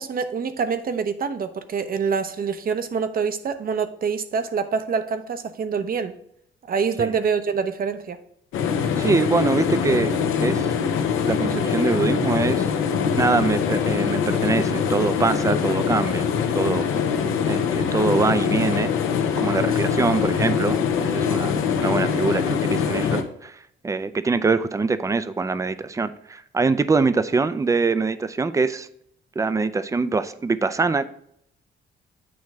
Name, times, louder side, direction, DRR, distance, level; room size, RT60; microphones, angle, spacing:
voice 1, 0.0-6.1 6.7-8.2 16.7-16.8 21.4-21.6, right 6 dB, 45° right, 10 dB, 0.7 m, -26 dB
sound 1, 8.5-23.2, left 7 dB, 85° left, 0.8 m, -23 dB
voice 2, 9.0-10.2 10.4-10.7 11.3-12.7 13.2-16.3 16.5-16.9 17.5-18.9 19.4-23.6 23.8-28.9 29.4-31.0, right 4 dB, 15° right, 13 dB, 0.4 m, -23 dB
8.5 x 3.1 x 4.7 m, 0.70 s
cardioid pair, 90°, 20 cm